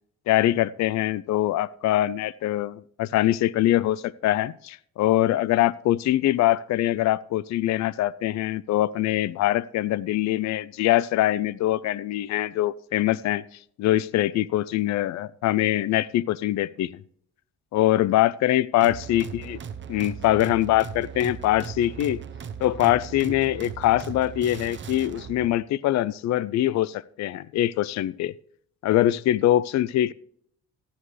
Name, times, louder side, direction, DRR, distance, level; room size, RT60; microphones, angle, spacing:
voice 1, 0.3-13.4 13.8-16.9 17.7-19.6 19.9-22.2 22.6-28.3 28.8-30.1, left 14 dB, 65° left, 20 dB, 0.4 m, -23 dB
sound 1, 18.8-25.5, right 7 dB, 40° right, 0.8 m, -38 dB
14.0 x 10.5 x 3.2 m, 0.63 s
cardioid pair, 90°, 30 cm